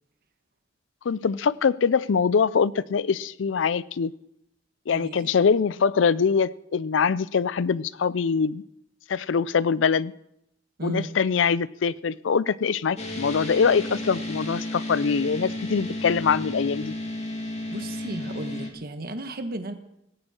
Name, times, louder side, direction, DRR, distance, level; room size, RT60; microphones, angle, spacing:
voice 1, 1.0-4.1 4.9-8.6 9.1-10.1 10.8-16.9, left 6 dB, 85° left, 20 dB, 0.5 m, -23 dB
voice 2, 4.9-5.3 10.8-11.1 17.7-19.7, right 2 dB, 55° right, 7 dB, 1.5 m, -34 dB
sound 1, 13.0-18.7, left 1 dB, 35° left, 2.5 m, -33 dB
17.5 x 17.5 x 4.4 m, 0.82 s
head